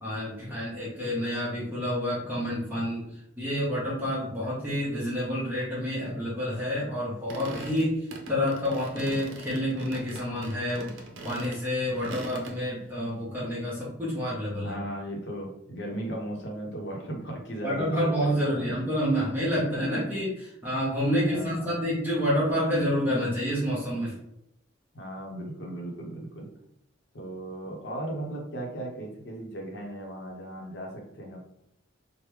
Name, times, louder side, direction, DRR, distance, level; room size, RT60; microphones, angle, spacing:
voice 1, 0.0-3.0 3.4-8.0 8.3-10.9 11.2-14.8 17.6-24.1, equal, 10° right, -8 dB, 0.9 m, -28 dB
sound 1, 7.3-12.6, right 2 dB, 75° right, 0.6 m, -41 dB
voice 2, 14.6-18.8 19.5-19.8 21.0-21.7 24.9-26.5 27.1-31.4, right 1 dB, 60° left, 0 dB, 0.8 m, -37 dB
3.3 x 2.1 x 3.2 m, 0.78 s
head